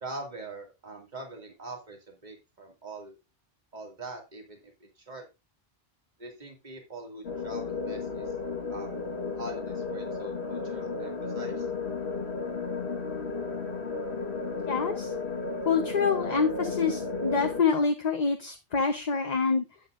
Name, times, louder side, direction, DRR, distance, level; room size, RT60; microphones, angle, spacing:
voice 1, 0.0-3.2 3.7-5.3 6.2-8.3 8.7-9.1 9.4-11.7, right 2 dB, 45° right, 2 dB, 2.3 m, -43 dB
sound 1, 7.2-17.6, left 4 dB, 85° left, 1.8 m, -33 dB
voice 2, 14.7-15.1 15.7-19.6, left 5 dB, 45° left, 5 dB, 0.9 m, -26 dB
11.5 x 8.4 x 2.5 m, 0.24 s
omnidirectional pair, 1.1 m